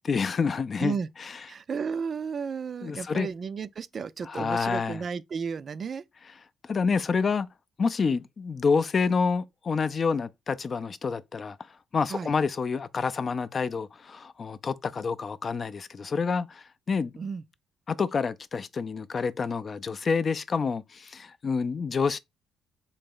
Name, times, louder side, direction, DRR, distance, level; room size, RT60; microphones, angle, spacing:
voice 1, 0.0-1.0 1.2-1.3 2.8-3.3 4.2-5.0 6.6-7.5 7.8-17.1 17.9-22.2, left 5 dB, 40° left, 0.4 m, -28 dB
voice 2, 1.5-6.0 12.1-12.3 17.2-17.4, right 6 dB, 45° right, 0.3 m, -33 dB
3.9 x 2.9 x 3.8 m
cardioid pair, 90°, 0 cm